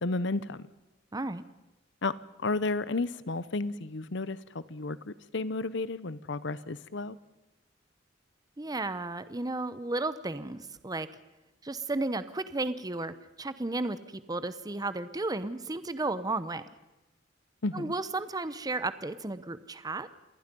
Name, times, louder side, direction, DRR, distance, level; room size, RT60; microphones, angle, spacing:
voice 1, 0.0-0.7 2.0-7.2 17.6-17.9, left 3 dB, 70° left, 17 dB, 0.9 m, -32 dB
voice 2, 1.1-1.4 8.6-11.1 11.6-16.6 17.7-20.1, right 2 dB, 20° right, 13 dB, 0.8 m, -33 dB
27.5 x 19.5 x 5.4 m, 1.0 s
head